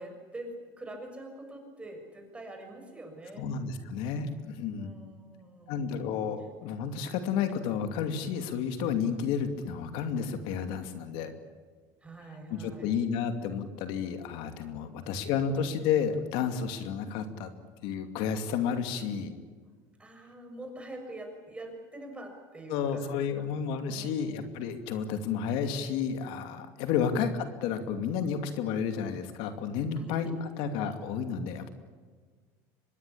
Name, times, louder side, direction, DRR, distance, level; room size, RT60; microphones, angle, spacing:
voice 1, 0.0-3.5 4.7-6.5 12.0-12.9 14.9-15.8 20.0-23.4 23.9-24.6 26.9-27.3 29.9-30.3 30.6-30.7, right 1 dB, 10° right, 3 dB, 6.7 m, -45 dB
voice 2, 3.4-5.0 5.7-11.3 12.5-17.5 17.8-19.3 22.7-31.7, left 7 dB, 65° left, 8 dB, 2.5 m, -31 dB
25.0 x 21.0 x 8.6 m, 1.5 s
supercardioid pair, 125°, 9 cm